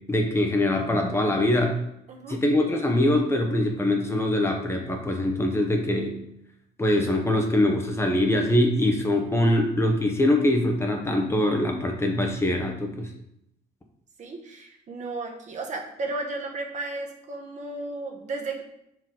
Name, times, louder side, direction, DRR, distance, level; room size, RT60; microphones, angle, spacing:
voice 1, 0.1-1.8 2.3-6.1 6.8-13.1, left 1 dB, 15° left, 2 dB, 0.8 m, -23 dB
voice 2, 14.2-18.6, right 3 dB, 45° right, 2 dB, 1.1 m, -34 dB
5.7 x 4.6 x 3.8 m, 0.79 s
cardioid pair, 110°, 17 cm